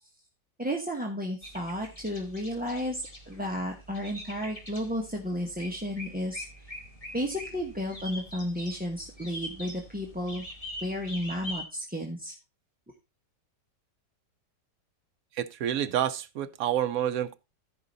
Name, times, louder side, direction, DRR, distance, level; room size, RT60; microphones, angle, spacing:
voice 1, 0.6-6.7 7.1-10.4 10.8-12.3, equal, 5° right, 1.0 m, -33 dB
sound 1, 1.4-11.6, equal, 20° left, 2.1 m, -44 dB
voice 2, 15.4-17.3, right 10 dB, 65° right, 1.0 m, -28 dB
14.0 x 5.0 x 4.0 m
omnidirectional pair, 1.9 m